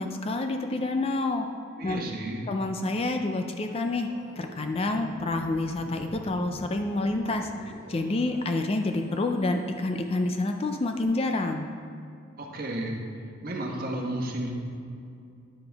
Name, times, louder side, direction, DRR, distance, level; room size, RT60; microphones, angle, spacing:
voice 1, 0.0-1.5 1.8-2.0 2.5-4.1 4.4-7.5 7.9-11.7, left 2 dB, 30° left, 5 dB, 0.4 m, -28 dB
voice 2, 1.8-2.4 12.4-13.0 13.4-14.5, right 1 dB, 45° right, -1 dB, 1.2 m, -32 dB
Organ, 3.7-11.0, right 1 dB, 25° right, 1.9 m, -48 dB
9.8 x 6.9 x 3.4 m, 2.4 s
head